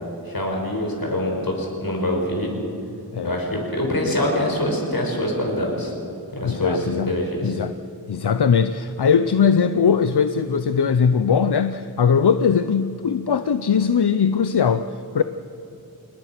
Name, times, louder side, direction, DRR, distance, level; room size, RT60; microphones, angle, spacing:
voice 1, 0.2-2.5 3.2-5.9 6.3-7.6, left 1 dB, 65° left, 0 dB, 5.8 m, -24 dB
voice 2, 6.4-7.1 7.4-7.7 8.1-14.9 15.1-15.2, left 6 dB, 85° left, 11 dB, 0.7 m, -20 dB
29.5 x 19.0 x 6.1 m, 2.7 s
wide cardioid pair, 55°, 38 cm